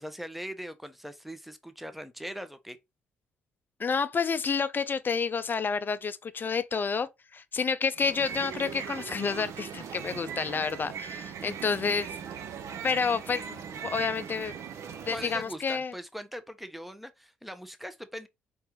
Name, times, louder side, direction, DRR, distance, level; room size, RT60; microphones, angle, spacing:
voice 1, 0.0-2.8 15.1-18.3, equal, ahead, 0.8 m, -41 dB
voice 2, 3.8-12.2 12.8-14.5 15.1-15.9, left 5 dB, 30° left, 0.5 m, -29 dB
sound 1, 7.9-15.6, right 7 dB, 50° right, 0.7 m, -40 dB
4.5 x 3.8 x 3.0 m
figure-of-eight pair, 45°, 6 cm